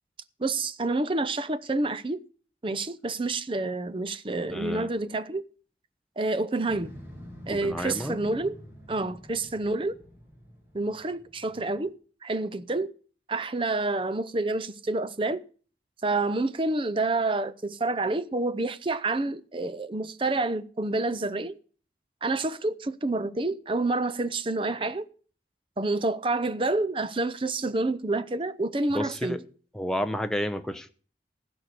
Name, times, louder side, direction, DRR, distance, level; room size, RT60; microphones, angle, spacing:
voice 1, 0.4-2.2 2.6-5.4 6.2-6.9 7.5-8.5 8.9-9.9 10.7-12.0 12.2-12.9 13.3-15.4 16.0-21.6 22.2-25.1 25.8-29.4, right 2 dB, 30° right, 0.6 m, -28 dB
voice 2, 4.5-4.9 7.5-8.2 28.9-29.4 29.7-30.9, equal, 5° left, 0.7 m, -31 dB
Motorcycle, 6.7-11.9, equal, 15° right, 2.7 m, -47 dB
15.5 x 6.2 x 6.8 m
head